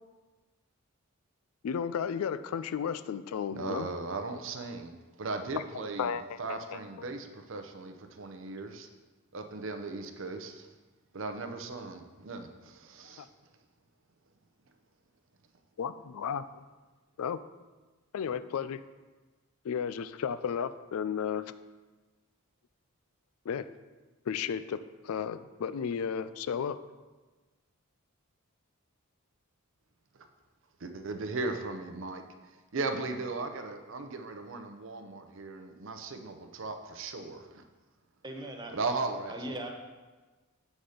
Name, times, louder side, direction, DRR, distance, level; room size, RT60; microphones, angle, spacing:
voice 1, 1.6-3.9 6.0-6.8 13.2-13.3 15.8-16.4 17.2-17.4 18.1-18.8 19.6-21.5 23.5-23.7 24.3-26.8, left 7 dB, 75° left, 13 dB, 0.3 m, -33 dB
voice 2, 3.5-8.9 9.3-10.7 11.1-13.3 30.1-30.2 30.8-32.2 32.7-37.6 38.7-39.7, right 3 dB, 60° right, 6 dB, 0.6 m, -37 dB
voice 3, 38.2-38.7 39.3-39.7, right 1 dB, 20° right, 2 dB, 0.7 m, -39 dB
7.8 x 4.2 x 4.9 m, 1.3 s
head